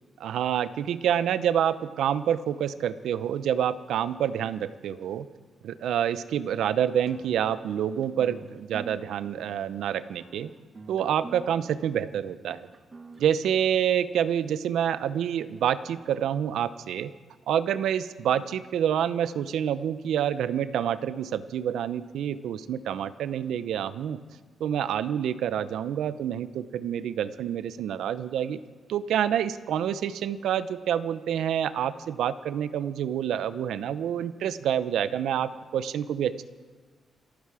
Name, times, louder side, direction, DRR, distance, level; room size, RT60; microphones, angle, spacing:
voice 1, 0.2-5.3 5.6-10.5 10.9-12.7 13.2-17.1 17.5-24.2 24.6-28.6 28.9-36.4, right 9 dB, 90° right, 15 dB, 0.6 m, -27 dB
sound 1, 7.1-14.5, right 3 dB, 35° right, 1.2 m, -48 dB
28.0 x 9.6 x 4.9 m, 1.5 s
cardioid pair, 110°, 0 cm